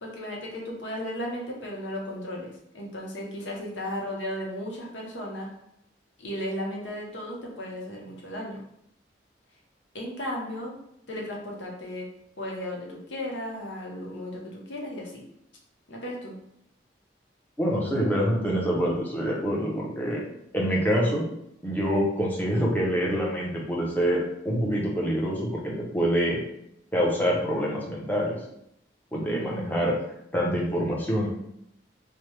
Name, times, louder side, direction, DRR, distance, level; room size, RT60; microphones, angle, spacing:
voice 1, 0.0-5.5 6.2-8.6 9.9-10.7 11.1-12.1 12.4-15.2 15.9-16.4 29.3-29.9, equal, 90° left, -1 dB, 0.8 m, -35 dB
voice 2, 17.6-20.2 20.5-21.3 21.6-26.4 26.9-28.4 29.1-29.9 30.3-31.3, equal, 10° left, -4 dB, 0.6 m, -26 dB
3.3 x 2.1 x 3.1 m, 0.76 s
head